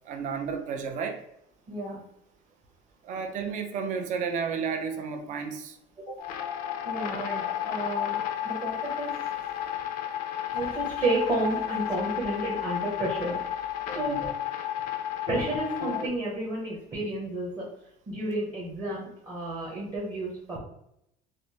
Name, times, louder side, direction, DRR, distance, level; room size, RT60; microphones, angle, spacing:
voice 1, 0.1-1.2 3.0-5.7 14.0-14.2, right 6 dB, 40° right, 5 dB, 0.5 m, -32 dB
voice 2, 1.7-2.0 6.0-6.1 6.8-8.2 8.4-9.1 10.5-14.3 15.3-17.7 18.1-20.6, right 2 dB, 20° right, -7 dB, 0.8 m, -31 dB
sound 1, 6.2-16.1, left 10 dB, 50° left, 0.4 m, -32 dB
5.0 x 2.0 x 2.7 m, 0.77 s
cardioid pair, 175°, 19 cm